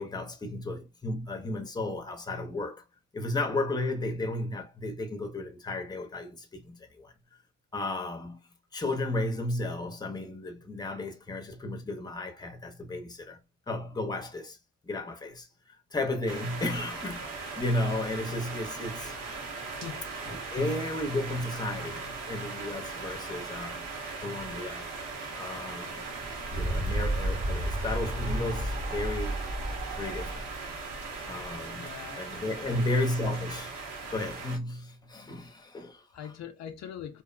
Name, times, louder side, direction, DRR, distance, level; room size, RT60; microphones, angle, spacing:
voice 1, 0.0-2.8 3.1-7.1 7.7-8.4 8.7-13.4 13.7-14.6 14.8-19.2 20.3-23.9 24.2-24.9 25.3-26.1 26.5-29.5 29.9-30.4 31.2-33.8 34.1-36.3, left 2 dB, 15° left, 0.6 m, -34 dB
sound 1, 16.3-34.6, right 4 dB, 85° right, 0.9 m, -39 dB
voice 2, 19.6-20.0 20.5-20.6 31.8-32.2 32.6-32.9 36.1-37.2, left 9 dB, 60° left, 0.4 m, -42 dB
sound 2, 26.0-31.6, right 1 dB, 50° right, 0.8 m, -32 dB
2.6 x 2.1 x 2.4 m
cardioid pair, 90°, 30 cm